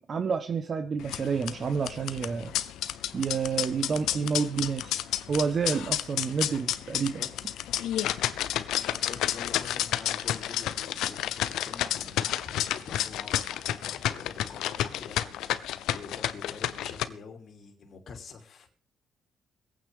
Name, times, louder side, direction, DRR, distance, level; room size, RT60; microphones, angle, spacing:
voice 1, 0.0-2.5 3.1-5.0 5.3-7.2, right 5 dB, 45° right, 1.1 m, -29 dB
sound 1, 1.0-17.0, left 12 dB, 85° left, 0.8 m, -31 dB
voice 2, 8.7-18.7, left 5 dB, 55° left, 2.9 m, -46 dB
24.0 x 9.1 x 3.6 m
cardioid pair, 90°, 0 cm